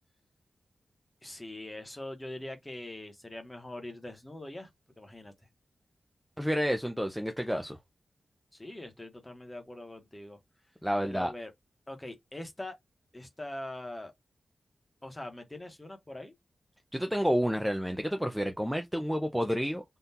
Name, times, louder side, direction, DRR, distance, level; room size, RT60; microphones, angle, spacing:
voice 1, 1.2-4.7 5.0-5.3 8.5-10.4 11.0-11.5 11.9-12.8 13.1-14.1 15.0-16.3, left 1 dB, 15° left, 0.9 m, -42 dB
voice 2, 6.4-7.8 10.8-11.3 16.9-19.8, equal, ahead, 0.4 m, -29 dB
3.7 x 2.3 x 2.7 m
wide cardioid pair, 115°, 0 cm